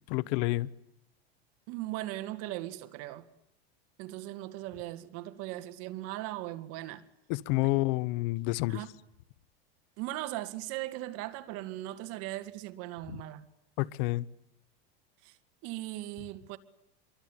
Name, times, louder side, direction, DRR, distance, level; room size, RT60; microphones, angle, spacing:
voice 1, 0.1-0.7 7.3-8.8 13.8-14.3, left 20 dB, 55° left, 1.2 m, -29 dB
voice 2, 1.7-3.3 4.0-7.0 8.7-8.9 10.0-13.5 15.2-15.4 15.6-16.6, right 16 dB, 50° right, 2.2 m, -38 dB
27.0 x 23.5 x 9.2 m
supercardioid pair, 145°, 31 cm